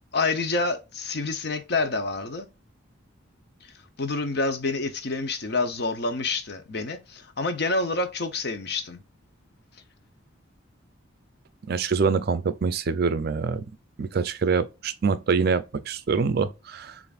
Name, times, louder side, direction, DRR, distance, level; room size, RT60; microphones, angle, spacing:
voice 1, 0.1-2.5 4.0-9.0, left 3 dB, 50° left, 0.7 m, -27 dB
voice 2, 11.7-13.6 14.0-17.0, right 5 dB, 50° right, 0.4 m, -25 dB
6.7 x 2.5 x 2.4 m
head